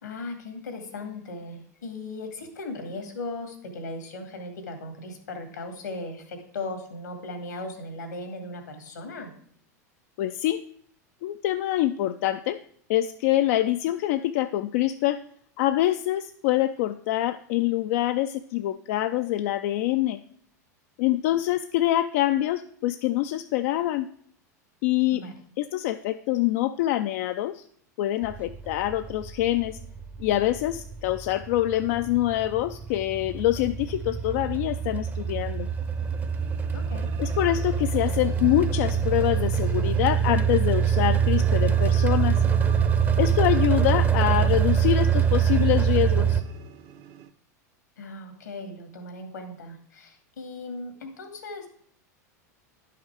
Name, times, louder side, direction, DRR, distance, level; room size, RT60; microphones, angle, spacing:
voice 1, 0.0-9.3 25.1-25.3 36.7-37.1 48.0-51.7, left 2 dB, 85° left, 5 dB, 2.1 m, -37 dB
voice 2, 10.2-10.6 11.2-12.6 12.9-15.2 15.6-20.2 21.0-24.1 24.8-25.2 25.6-27.6 28.0-29.8 30.2-35.7 37.2-42.4 43.2-46.4, left 14 dB, 60° left, 9 dB, 0.4 m, -25 dB
sound 1, 28.2-46.4, right 7 dB, 20° right, 0.7 m, -24 dB
sound 2, 34.2-47.3, right 9 dB, 50° right, 0.7 m, -44 dB
10.5 x 5.8 x 4.7 m, 0.62 s
hypercardioid pair, 95°, 9 cm